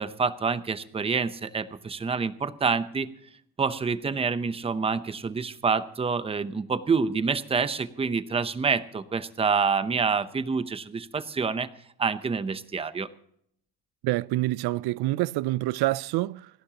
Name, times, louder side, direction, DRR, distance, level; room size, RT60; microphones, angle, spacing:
voice 1, 0.0-3.1 3.6-11.7 12.0-13.1, right 5 dB, 15° right, 0.7 m, -27 dB
voice 2, 14.0-16.5, right 18 dB, 85° right, 0.5 m, -27 dB
29.0 x 11.5 x 2.9 m
cardioid pair, 160°, 37 cm